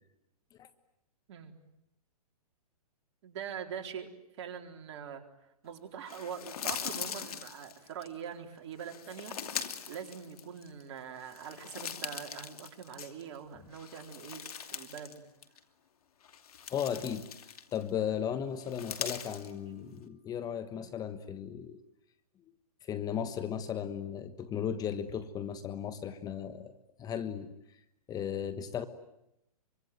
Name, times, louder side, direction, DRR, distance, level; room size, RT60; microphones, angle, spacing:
voice 1, 3.2-4.1 4.4-5.2 5.6-15.2, right 8 dB, 50° right, 4 dB, 4.1 m, -43 dB
sound 1, 6.1-8.1 8.8-10.8 11.2-13.4 13.7-15.2 15.4-15.6 16.2-17.9 18.6-19.5, left 8 dB, 70° left, 2.8 m, -41 dB
voice 2, 16.7-21.8 22.8-26.7 27.0-27.5 28.1-28.9, left 8 dB, 20° left, 12 dB, 1.3 m, -36 dB
sound 2, 19.0-20.9, right 7 dB, 35° right, 7.2 m, -56 dB
25.0 x 25.0 x 9.4 m, 0.83 s
hypercardioid pair, 140°, 20 cm